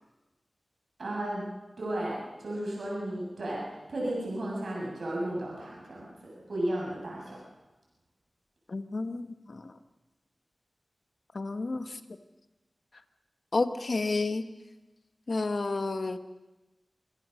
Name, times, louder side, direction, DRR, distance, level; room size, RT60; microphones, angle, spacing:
voice 1, 1.0-1.5 1.8-3.6 3.9-7.4, right 1 dB, 75° right, -4 dB, 6.9 m, -34 dB
voice 2, 8.7-9.7 11.3-12.0 13.5-14.4 15.3-16.2, left 3 dB, 60° left, 9 dB, 1.4 m, -30 dB
26.0 x 17.0 x 6.5 m, 1.1 s
wide cardioid pair, 55°, 0 cm